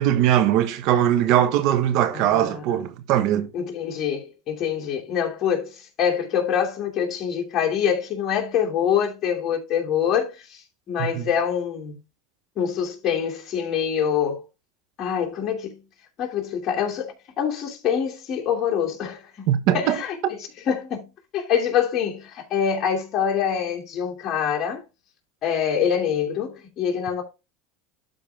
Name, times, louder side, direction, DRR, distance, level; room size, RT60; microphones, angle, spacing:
voice 1, 0.0-3.5 11.0-11.3 19.5-20.0 20.2-20.4, right 11 dB, 60° right, 1.4 m, -21 dB
voice 2, 2.1-2.6 3.5-11.9 12.6-14.4 15.0-15.8 16.2-20.4 20.7-24.8 25.4-27.2, left 8 dB, 40° left, 2.8 m, -25 dB
12.0 x 4.2 x 3.6 m
supercardioid pair, 115°, 0 cm